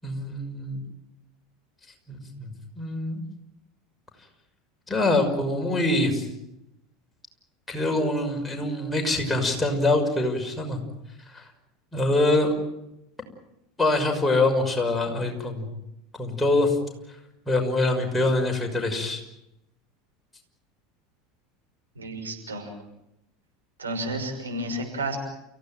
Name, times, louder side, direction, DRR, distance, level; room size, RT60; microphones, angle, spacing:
voice 1, 0.0-0.8 2.1-3.2 4.9-6.3 7.7-10.8 11.3-11.5 11.9-12.5 13.8-15.7 16.2-16.8 17.5-19.2, left 2 dB, 10° left, 2 dB, 6.0 m, -24 dB
voice 2, 21.9-22.7 23.8-25.2, right 1 dB, 80° right, 2 dB, 6.1 m, -31 dB
30.0 x 16.5 x 9.2 m, 0.87 s
figure-of-eight pair, 75°, 0 cm